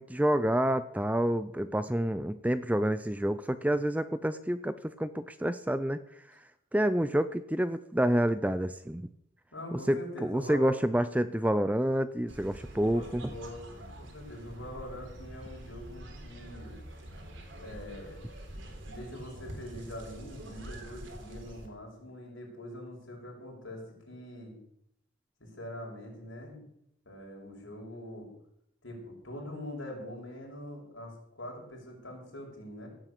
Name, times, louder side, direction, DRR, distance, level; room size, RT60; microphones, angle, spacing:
voice 1, 0.0-6.0 6.7-9.1 9.9-13.3, right 1 dB, 5° right, 13 dB, 0.4 m, -28 dB
voice 2, 9.5-10.8 12.7-16.7 17.6-18.2 18.5-24.6 25.4-26.7 27.1-28.3 28.8-32.9, left 1 dB, 65° left, 0 dB, 5.9 m, -43 dB
sound 1, 12.3-21.7, right 1 dB, 65° right, 3.5 m, -46 dB
17.0 x 7.8 x 8.3 m, 0.76 s
head